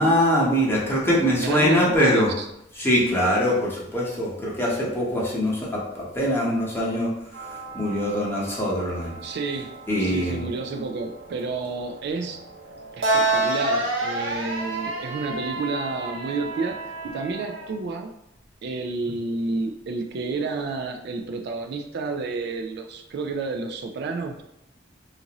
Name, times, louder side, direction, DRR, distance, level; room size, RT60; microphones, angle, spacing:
voice 1, 0.0-2.3 2.8-7.1 7.7-9.1 9.9-10.5, equal, 10° left, -5 dB, 0.9 m, -22 dB
voice 2, 1.3-2.5 9.2-12.4 12.9-18.1 18.6-24.4, right 3 dB, 60° right, 4 dB, 0.3 m, -30 dB
sound 1, 7.3-17.7, right 2 dB, 80° right, 0.8 m, -30 dB
3.9 x 2.5 x 2.9 m, 0.83 s
head